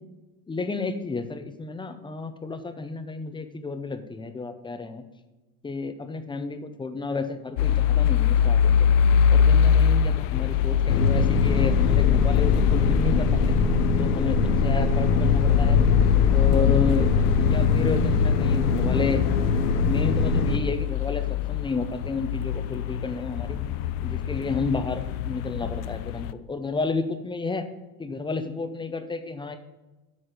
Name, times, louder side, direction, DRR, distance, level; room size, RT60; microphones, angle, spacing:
voice 1, 0.5-5.0 5.6-8.9 9.3-13.3 14.0-15.8 16.3-17.1 17.4-19.2 19.8-21.2 21.5-23.6 24.0-27.6 28.0-29.6, left 3 dB, 10° left, 8 dB, 0.6 m, -31 dB
sound 1, 7.6-26.3, left 9 dB, 65° left, 0.6 m, -23 dB
sound 2, 10.9-20.6, left 3 dB, 90° left, 1.1 m, -23 dB
7.8 x 4.1 x 6.6 m, 1.1 s
supercardioid pair, 120°, 44 cm